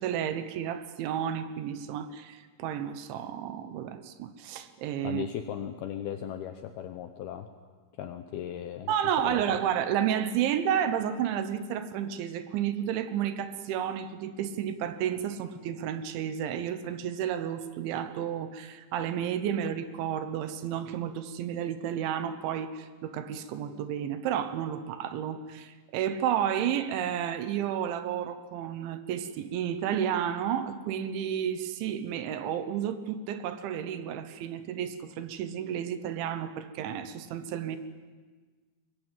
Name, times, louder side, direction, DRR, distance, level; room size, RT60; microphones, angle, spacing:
voice 1, 0.0-5.2 8.9-37.8, right 9 dB, 75° right, 11 dB, 3.3 m, -31 dB
voice 2, 5.0-7.5 8.0-8.9 9.2-9.4, left 10 dB, 75° left, 7 dB, 2.3 m, -37 dB
22.0 x 21.5 x 9.1 m, 1.4 s
omnidirectional pair, 5.6 m